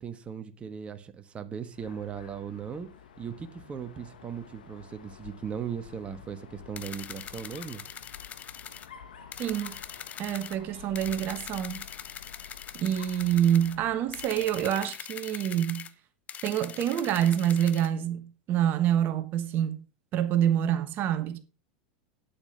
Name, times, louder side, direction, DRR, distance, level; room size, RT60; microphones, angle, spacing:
voice 1, 0.0-2.9 3.2-7.8, right 7 dB, 25° right, 1.3 m, -38 dB
Dog, 1.7-15.0, left 8 dB, 85° left, 1.4 m, -50 dB
sound 1, 6.8-8.9 9.3-10.6 10.9-13.8 14.1-15.9 16.3-17.9, left 9 dB, 35° left, 0.8 m, -42 dB
voice 2, 9.4-9.8 10.2-11.8 12.7-15.9 16.4-19.8 20.1-21.4, right 10 dB, 45° right, 1.2 m, -26 dB
8.7 x 8.6 x 5.5 m
hypercardioid pair, 95°, 5 cm